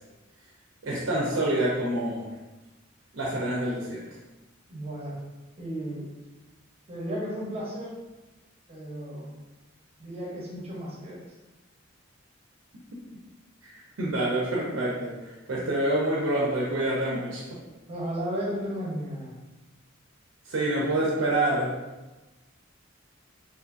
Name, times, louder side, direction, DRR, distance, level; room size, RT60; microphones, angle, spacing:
voice 1, 0.8-2.3 3.1-4.0 13.6-17.6 20.4-21.7, right 1 dB, 75° right, -4 dB, 0.5 m, -27 dB
voice 2, 4.7-5.2 5.6-6.0 6.9-8.0 8.7-9.4 10.0-11.2 17.9-19.3, equal, 30° right, -5 dB, 0.7 m, -34 dB
2.5 x 2.5 x 2.4 m, 1.1 s
head